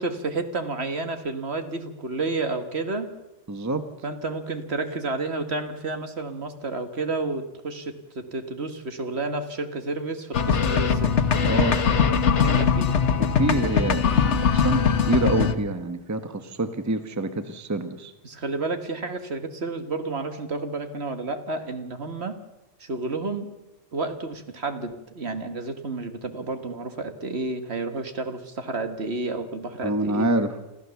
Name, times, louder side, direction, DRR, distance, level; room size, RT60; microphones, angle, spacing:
voice 1, 0.0-3.1 4.0-11.1 12.4-12.9 18.2-22.4 22.8-23.5 23.9-30.3, right 3 dB, 55° right, 8 dB, 1.7 m, -31 dB
voice 2, 3.5-3.8 11.4-11.8 13.2-18.1 29.8-30.6, right 2 dB, 15° right, 9 dB, 1.0 m, -26 dB
sound 1, 10.3-15.5, left 6 dB, 65° left, 1.4 m, -21 dB
26.5 x 14.0 x 7.0 m, 0.99 s
omnidirectional pair, 1.3 m